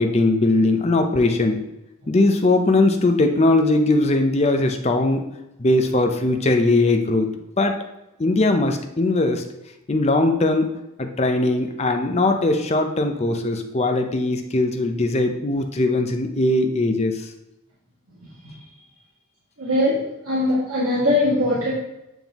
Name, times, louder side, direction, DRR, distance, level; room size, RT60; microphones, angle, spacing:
voice 1, 0.0-1.6 2.1-5.2 5.6-7.3 7.6-7.8 8.2-9.4 9.9-10.7 11.0-17.3, left 2 dB, 30° left, 5 dB, 0.6 m, -20 dB
voice 2, 19.6-20.0 20.2-21.7, left 1 dB, 90° right, -9 dB, 1.9 m, -21 dB
9.1 x 3.5 x 3.0 m, 0.90 s
head